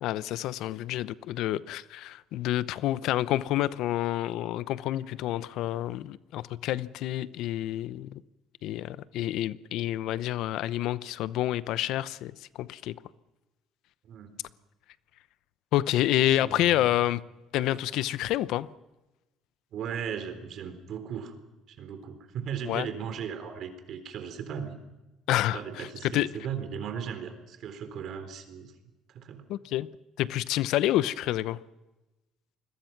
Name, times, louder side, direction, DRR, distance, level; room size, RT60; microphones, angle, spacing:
voice 1, 0.0-8.2 8.6-12.9 15.7-17.2 17.5-18.7 22.6-22.9 25.3-25.9 26.1-26.3 29.5-29.9 30.2-31.6, left 14 dB, 70° left, 0.8 m, -28 dB
voice 2, 16.4-17.0 19.7-21.3 21.7-24.7 25.5-28.7 29.1-29.5, right 7 dB, 55° right, 3.8 m, -37 dB
29.0 x 21.5 x 6.0 m
cardioid pair, 130°, 0 cm